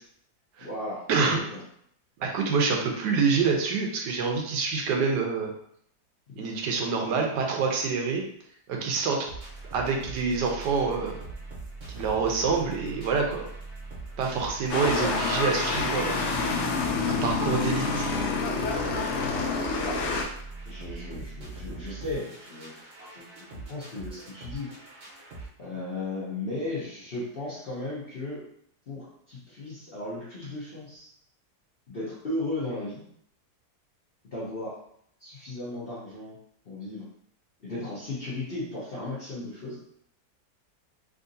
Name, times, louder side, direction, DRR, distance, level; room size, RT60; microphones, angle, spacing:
voice 1, 0.6-1.1 1.5-1.6 6.3-6.4 14.9-15.1 19.8-20.0 20.7-24.7 25.6-28.5 28.9-31.1 31.9-33.0 34.3-34.8 35.2-36.4 36.6-37.0 37.6-39.8, left 2 dB, 45° left, -9 dB, 0.9 m, -36 dB
voice 2, 2.2-5.5 6.4-8.2 8.7-9.3 9.7-11.2 11.9-13.4 14.2-16.2 17.0-18.1, right 5 dB, 85° right, 1 dB, 1.3 m, -26 dB
sound 1, 9.3-25.5, right 2 dB, 50° right, 0.9 m, -41 dB
sound 2, 14.7-20.2, left 4 dB, 85° left, 0.6 m, -28 dB
3.7 x 2.8 x 2.6 m, 0.67 s
omnidirectional pair, 1.8 m